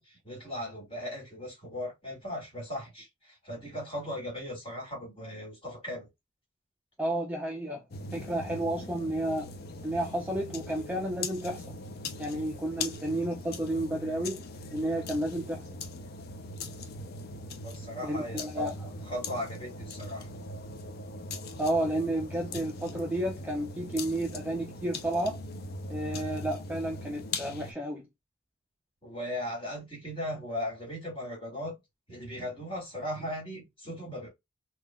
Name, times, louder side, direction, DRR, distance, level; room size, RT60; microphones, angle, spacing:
voice 1, 0.0-6.1 16.0-16.3 17.6-18.6 19.1-20.3 29.0-31.8 32.1-34.3, left 1 dB, 25° left, 1.9 m, -38 dB
voice 2, 7.0-7.8 8.1-9.5 9.8-11.7 12.2-14.4 14.7-15.7 18.0-18.9 21.6-25.4 25.9-28.1, right 1 dB, 10° right, 0.4 m, -31 dB
sound 1, 7.9-27.7, left 2 dB, 45° left, 0.5 m, -40 dB
3.6 x 2.3 x 2.2 m
head